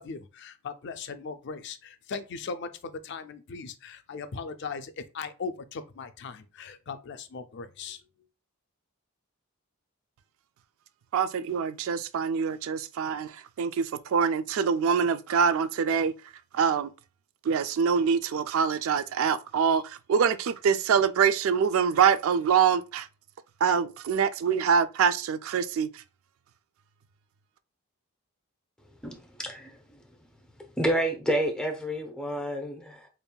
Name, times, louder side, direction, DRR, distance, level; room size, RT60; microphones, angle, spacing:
voice 1, 0.0-8.0, left 5 dB, 50° left, 0.4 m, -38 dB
voice 2, 11.1-16.1 16.5-16.9 17.4-23.1 23.6-26.0, right 6 dB, 65° right, 0.3 m, -25 dB
voice 3, 28.8-30.0 30.6-33.1, right 1 dB, 5° left, 0.6 m, -30 dB
5.3 x 2.5 x 2.2 m
head